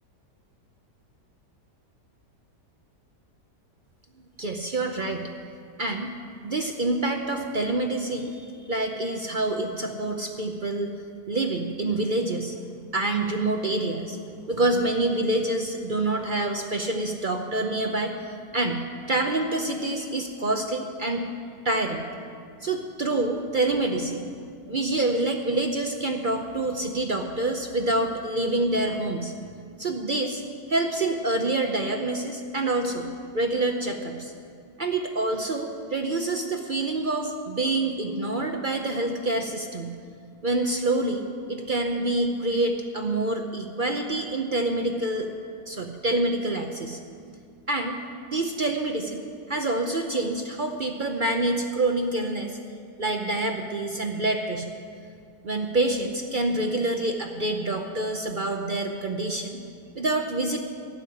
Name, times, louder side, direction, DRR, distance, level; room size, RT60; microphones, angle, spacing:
voice 1, 4.4-5.3 5.8-6.1 6.4-10.9 11.3-12.5 12.9-14.2 14.5-18.8 19.1-21.3 21.6-22.1 22.6-24.3 24.7-29.3 29.8-30.4 30.7-33.1 33.3-34.3 34.8-39.9 40.4-41.2 41.5-45.3 45.7-47.0 47.7-48.0 48.3-49.2 49.5-52.6 53.0-54.7 55.4-59.6 60.0-60.6, right 2 dB, 45° right, 4 dB, 0.6 m, -27 dB
12.0 x 7.6 x 9.9 m, 2.2 s
omnidirectional pair, 1.8 m